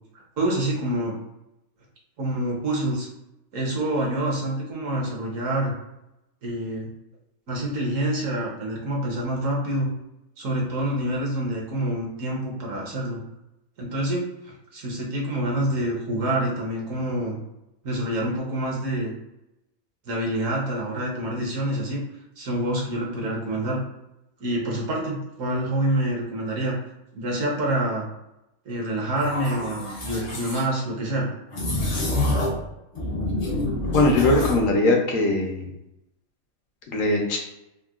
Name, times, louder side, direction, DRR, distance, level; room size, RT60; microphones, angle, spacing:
voice 1, 0.4-1.1 2.2-3.1 3.5-5.7 6.4-6.9 7.5-9.9 10.4-13.2 13.8-17.4 17.8-19.1 20.1-22.0 22.4-23.8 24.4-26.8 27.2-28.1 28.7-31.3, right 1 dB, 70° right, -2 dB, 1.1 m, -27 dB
sound 1, 29.2-30.6 31.5-32.7 32.9-34.7, left 1 dB, 55° left, 0.4 m, -27 dB
voice 2, 33.9-35.7 36.9-37.4, left 2 dB, 70° left, 1 dB, 1.0 m, -20 dB
3.6 x 2.1 x 2.3 m, 0.90 s
omnidirectional pair, 1.5 m